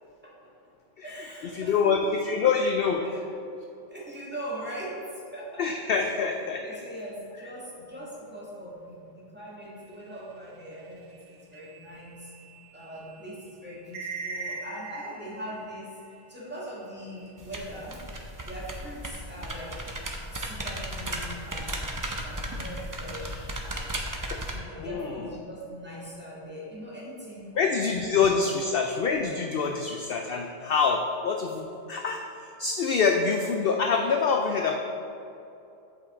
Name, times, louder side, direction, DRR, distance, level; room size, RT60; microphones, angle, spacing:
voice 1, 1.0-2.0 3.0-3.5 3.9-6.0 6.5-12.3 12.7-15.9 16.3-18.1 18.4-19.8 20.3-21.8 22.2-24.0 24.5-28.6, equal, 10° right, -7 dB, 1.7 m, -41 dB
voice 2, 1.5-3.0 5.6-6.6 24.8-25.1 27.6-32.2 32.6-34.8, left 5 dB, 60° left, 3 dB, 0.6 m, -25 dB
sound 1, 9.9-16.2 16.6-17.5, right 4 dB, 90° right, 1.2 m, -42 dB
sound 2, 17.4-24.6, right 1 dB, 25° right, 0.5 m, -35 dB
7.5 x 5.6 x 4.0 m, 2.8 s
omnidirectional pair, 1.3 m